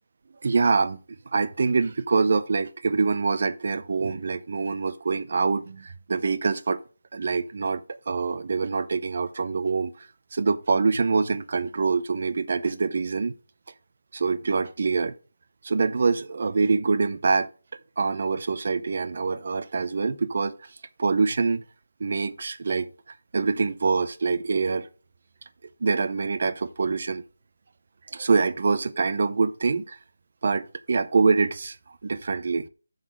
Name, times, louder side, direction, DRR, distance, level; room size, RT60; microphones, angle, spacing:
voice 1, 0.4-1.0 1.3-6.8 7.1-13.3 14.1-15.1 15.6-17.5 18.0-20.5 21.0-21.6 22.0-22.9 23.3-24.9 25.8-27.2 28.1-30.0 30.4-31.8 32.0-32.7, right 4 dB, 35° right, 0.6 m, -25 dB
7.8 x 4.0 x 6.1 m
figure-of-eight pair, 180°, 0 cm